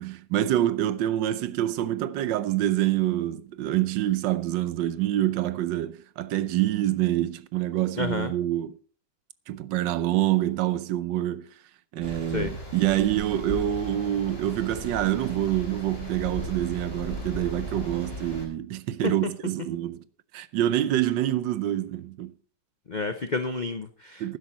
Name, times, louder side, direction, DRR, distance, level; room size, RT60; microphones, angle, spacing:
voice 1, 0.0-8.8 9.5-11.4 11.9-20.0 20.3-22.3 24.2-24.4, right 13 dB, 80° right, 1.4 m, -26 dB
voice 2, 8.0-8.3 12.3-12.5 19.0-19.1 22.9-24.4, left 3 dB, 85° left, 0.4 m, -30 dB
sound 1, 12.0-18.5, equal, 30° left, 3.7 m, -37 dB
12.5 x 10.0 x 4.2 m
omnidirectional pair, 2.0 m